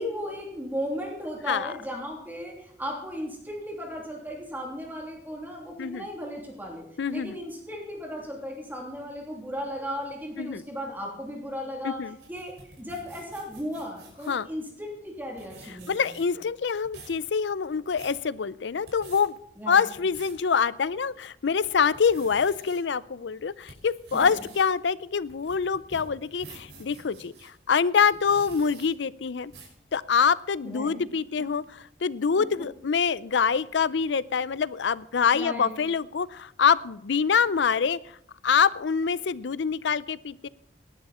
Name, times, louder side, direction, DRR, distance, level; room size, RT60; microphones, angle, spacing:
voice 1, 0.0-12.0 12.3-16.1 19.6-19.9 24.1-24.4 30.6-31.0 35.3-35.7, equal, 10° right, -1 dB, 3.1 m, -36 dB
voice 2, 7.0-7.4 10.4-10.6 11.8-12.2 14.3-14.5 15.9-19.3 19.7-29.5 29.9-38.2 38.4-40.5, left 6 dB, 75° left, 19 dB, 0.5 m, -25 dB
sound 1, 12.0-14.4 15.1-15.2 15.4-16.4 16.7-17.2 17.7-18.2 18.7-19.2 19.8-20.4 20.9-21.0 21.5-22.8 23.3-27.5 28.0-28.9 29.5-29.8, right 3 dB, 70° right, 5.8 m, -49 dB
18.5 x 11.5 x 4.3 m, 0.73 s
head